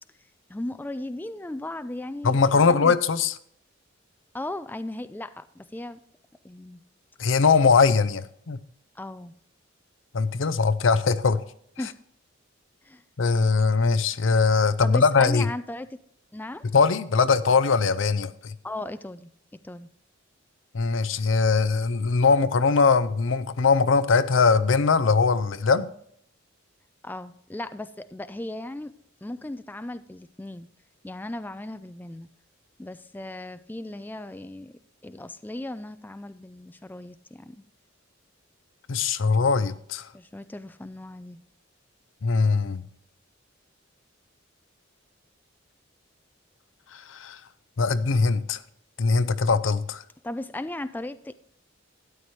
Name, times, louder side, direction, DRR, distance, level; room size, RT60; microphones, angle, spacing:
voice 1, 0.5-2.9 4.3-6.0 6.4-6.8 9.0-9.3 11.8-12.0 12.8-13.0 14.8-16.0 16.3-16.7 18.6-19.3 19.6-19.9 27.0-28.9 29.2-30.7 31.0-32.3 32.8-37.6 40.1-41.4 50.2-51.3, left 1 dB, 10° left, 0.3 m, -36 dB
voice 2, 2.2-3.3 7.2-8.6 10.1-11.4 13.2-15.5 16.7-18.5 20.7-25.9 38.9-40.1 42.2-42.8 46.9-47.4 47.8-48.6 49.0-50.0, left 4 dB, 70° left, 0.6 m, -21 dB
13.0 x 9.9 x 3.1 m
head